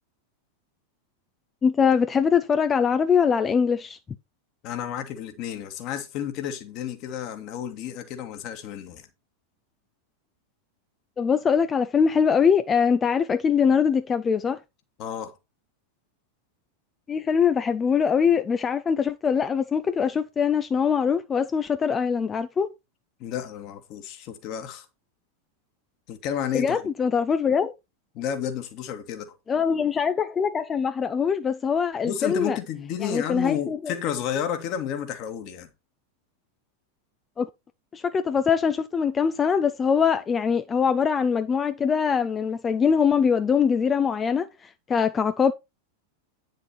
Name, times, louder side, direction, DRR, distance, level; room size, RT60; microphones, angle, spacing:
voice 1, 1.6-4.0 11.2-14.6 17.1-22.7 26.5-27.7 29.5-32.6 33.0-33.9 37.4-37.5 37.9-45.5, left 6 dB, 20° left, 0.6 m, -23 dB
voice 2, 4.6-9.1 15.0-15.3 23.2-24.9 26.1-26.9 28.1-29.4 32.0-35.7, left 9 dB, 40° left, 2.0 m, -31 dB
9.8 x 6.5 x 4.3 m
figure-of-eight pair, 90°, 0 cm